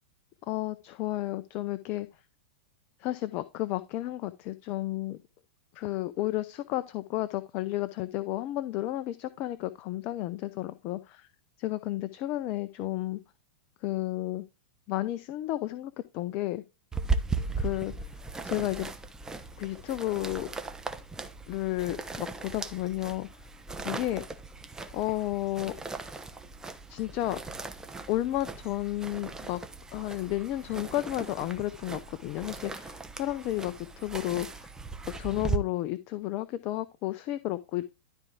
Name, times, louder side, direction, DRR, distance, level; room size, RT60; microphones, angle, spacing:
voice 1, 0.5-2.1 3.0-5.2 5.7-11.3 11.6-13.2 13.8-14.4 14.9-16.6 17.6-17.9 18.4-18.9 19.6-20.5 21.5-23.3 23.8-24.2 24.9-25.7 26.9-27.4 28.1-29.6 29.9-34.7 35.2-37.8, left 15 dB, 40° left, 12 dB, 0.6 m, -32 dB
sound 1, 16.9-35.6, right 4 dB, 10° right, 0.9 m, -37 dB
12.5 x 4.5 x 3.6 m, 0.27 s
hypercardioid pair, 110°, 6 cm